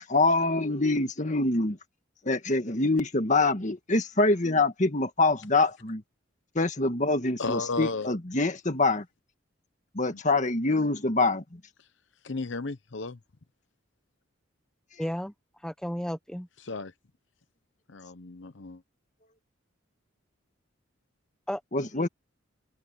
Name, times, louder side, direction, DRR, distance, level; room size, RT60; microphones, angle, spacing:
voice 1, 0.1-1.8 2.2-6.0 6.6-9.1 9.9-11.6 21.7-22.1, left 2 dB, 35° left, 1.8 m, -25 dB
voice 2, 7.4-8.2 10.1-10.2 12.2-13.2 16.6-16.9 17.9-18.8, left 3 dB, 65° left, 0.8 m, -34 dB
voice 3, 15.0-15.3 15.6-16.5 21.5-21.6 22.0-22.1, equal, 5° left, 0.9 m, -33 dB
head